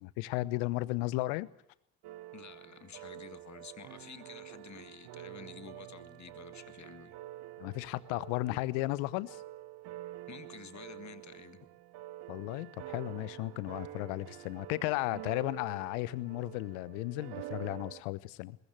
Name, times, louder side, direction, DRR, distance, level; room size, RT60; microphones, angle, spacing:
voice 1, 0.0-1.5 7.6-9.4 12.3-18.6, left 20 dB, 70° left, 19 dB, 1.0 m, -34 dB
sound 1, 2.0-18.0, right 15 dB, 60° right, 1.1 m, -47 dB
voice 2, 2.3-7.2 10.3-11.8, left 7 dB, 40° left, 12 dB, 2.0 m, -50 dB
22.0 x 18.5 x 7.8 m, 0.74 s
figure-of-eight pair, 45°, 43 cm